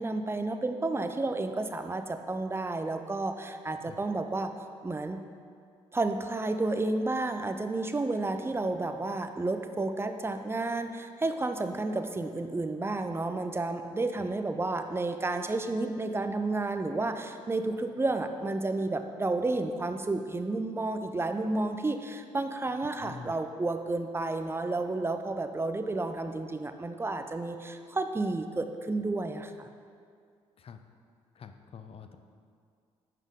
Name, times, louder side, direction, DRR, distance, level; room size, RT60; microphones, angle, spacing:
voice 1, 0.0-4.5 4.8-5.2 5.9-29.7, right 2 dB, 20° right, 7 dB, 0.5 m, -31 dB
voice 2, 23.0-23.3 30.6-30.8 31.4-32.2, left 6 dB, 50° left, 8 dB, 0.5 m, -46 dB
7.5 x 5.3 x 3.6 m, 2.2 s
supercardioid pair, 55°, 13 cm